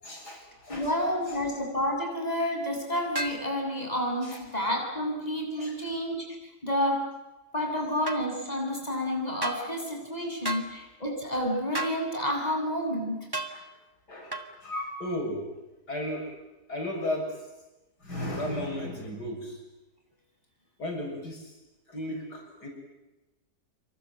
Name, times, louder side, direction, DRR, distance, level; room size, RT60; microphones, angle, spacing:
voice 1, 0.0-0.9 1.3-1.4 4.2-4.4 5.6-5.7 13.5-13.7 14.1-15.5 15.9-16.3 16.7-17.4 18.0-19.6 20.8-21.5 21.9-22.7, left 1 dB, 80° left, 1 dB, 7.8 m, -34 dB
voice 2, 0.7-6.2 6.6-7.0 7.5-13.3, equal, 25° left, 1 dB, 8.1 m, -30 dB
sound 1, 3.1-3.4 8.1-8.2 9.4-9.6 10.4-10.7 11.7-12.0 13.3-13.5 14.3-14.5, right 1 dB, 15° right, 2.3 m, -32 dB
28.0 x 25.5 x 7.9 m, 1.0 s
omnidirectional pair, 1.7 m